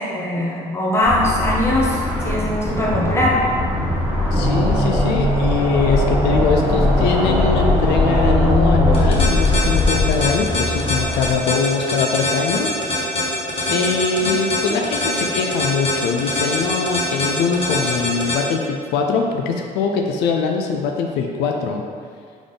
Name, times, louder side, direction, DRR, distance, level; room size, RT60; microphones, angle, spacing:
voice 1, 0.0-3.4 14.2-14.3, left 1 dB, 15° left, -4 dB, 0.9 m, -21 dB
sound 1, 1.0-11.4, left 1 dB, 10° right, 1.3 m, -19 dB
voice 2, 4.3-12.7 13.6-21.8, left 5 dB, 85° left, 3 dB, 0.4 m, -22 dB
sound 2, 8.9-18.4, left 2 dB, 35° left, 1.1 m, -22 dB
3.5 x 3.5 x 3.9 m, 2.1 s
cardioid pair, 110°, 17 cm